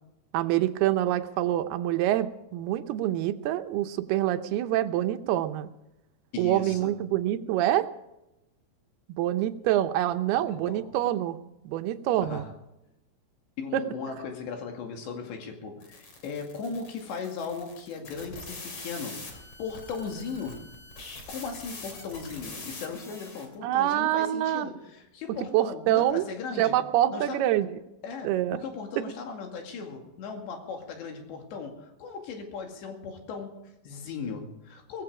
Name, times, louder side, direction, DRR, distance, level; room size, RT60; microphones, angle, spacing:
voice 1, 0.3-5.7 6.4-7.9 9.2-11.4 11.6-12.4 13.7-13.8 23.6-24.7 25.5-26.2 26.6-27.8 28.2-28.6 29.0-29.1, right 13 dB, 75° right, 9 dB, 2.6 m, -26 dB
voice 2, 6.3-7.0 10.3-10.9 12.2-12.5 13.6-20.7 21.3-26.7 27.1-27.4 28.0-35.0, left 5 dB, 80° left, 3 dB, 4.5 m, -37 dB
sound 1, 15.8-23.5, left 3 dB, 35° left, 3.6 m, -44 dB
18.0 x 15.5 x 4.9 m, 0.92 s
omnidirectional pair, 5.0 m